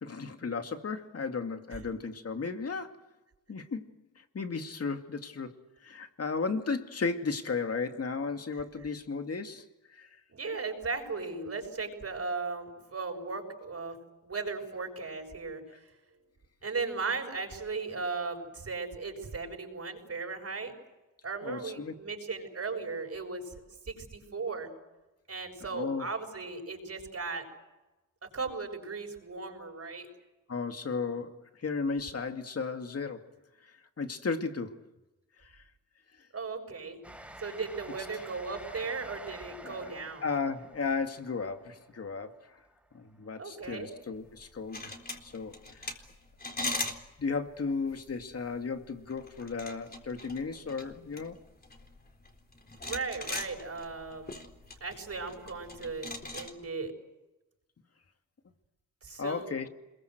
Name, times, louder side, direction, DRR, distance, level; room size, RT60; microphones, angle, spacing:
voice 1, 0.0-2.9 3.5-3.9 4.3-5.5 5.8-10.1 21.4-22.0 25.7-26.1 30.5-33.3 34.0-34.8 35.5-35.6 39.6-39.9 40.2-42.3 42.9-45.6 46.6-46.7 47.2-51.4 59.2-59.7, left 4 dB, 50° left, 2.4 m, -34 dB
voice 2, 10.3-14.0 14.2-15.6 16.6-20.7 21.2-23.5 23.8-24.7 25.3-27.5 28.2-30.1 36.3-37.0 37.4-40.3 43.4-43.9 52.8-54.4 54.8-56.9 59.0-59.6, right 4 dB, 50° right, 7.2 m, -37 dB
Train, 37.0-43.2, right 1 dB, 5° right, 4.7 m, -49 dB
sound 1, 44.3-56.5, left 2 dB, 30° left, 3.9 m, -41 dB
26.5 x 22.5 x 8.0 m
cardioid pair, 70°, 32 cm